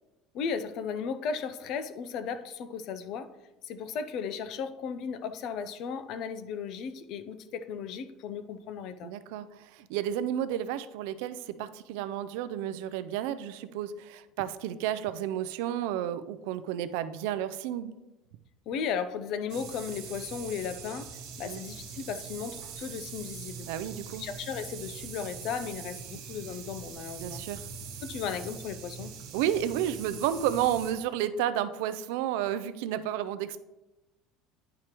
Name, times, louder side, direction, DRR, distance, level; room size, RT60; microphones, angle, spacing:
voice 1, 0.3-3.3 3.6-9.1 18.7-21.1 21.4-23.7 24.2-27.4 28.0-29.1, left 6 dB, 45° left, 11 dB, 0.4 m, -35 dB
voice 2, 9.0-18.0 21.4-21.6 23.7-24.3 27.2-27.6 29.3-33.6, right 10 dB, 75° right, 13 dB, 0.4 m, -31 dB
sound 1, 19.5-30.9, right 6 dB, 50° right, 1.2 m, -43 dB
10.0 x 4.8 x 3.0 m, 1.0 s
cardioid pair, 170°, 0 cm